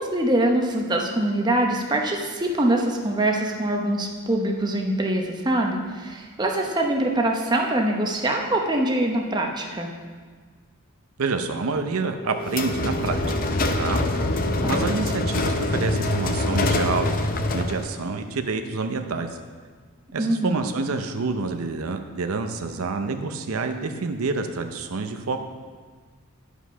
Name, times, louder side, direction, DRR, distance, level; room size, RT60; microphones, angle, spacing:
voice 1, 0.0-9.9 14.6-14.9 20.2-20.6, right 1 dB, 20° right, 1 dB, 0.8 m, -24 dB
voice 2, 11.2-13.2 13.8-14.0 14.7-17.2 17.5-19.4 20.1-25.4, right 4 dB, 85° right, 6 dB, 0.6 m, -28 dB
Telephone, 12.1-17.1, right 1 dB, 20° left, 2.1 m, -36 dB
sound 1, 12.5-17.9, left 2 dB, 40° left, 0.6 m, -24 dB
10.0 x 5.0 x 5.6 m, 1.5 s
head